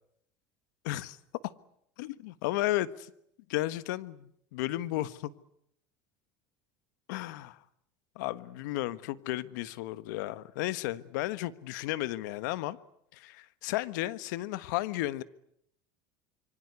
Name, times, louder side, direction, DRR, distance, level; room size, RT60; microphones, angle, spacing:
voice 1, 0.8-1.2 2.0-3.1 3.5-5.3 7.1-7.6 8.1-12.8 13.1-15.2, left 16 dB, 80° left, 15 dB, 1.4 m, -33 dB
26.5 x 24.5 x 8.2 m, 0.73 s
supercardioid pair, 105°, 10 cm